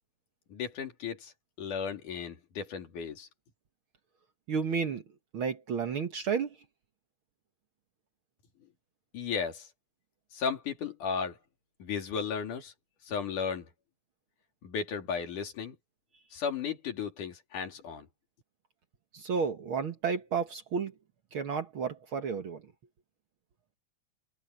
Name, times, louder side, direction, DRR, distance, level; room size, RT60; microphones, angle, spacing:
voice 1, 0.5-1.3 1.6-3.3 9.1-9.7 10.3-11.4 11.8-12.7 13.0-13.7 14.6-15.8 16.3-18.1, left 6 dB, 85° left, 4.3 m, -35 dB
voice 2, 4.5-5.0 5.3-6.6 19.1-20.9 21.3-22.6, right 6 dB, 55° right, 1.7 m, -32 dB
omnidirectional pair, 3.5 m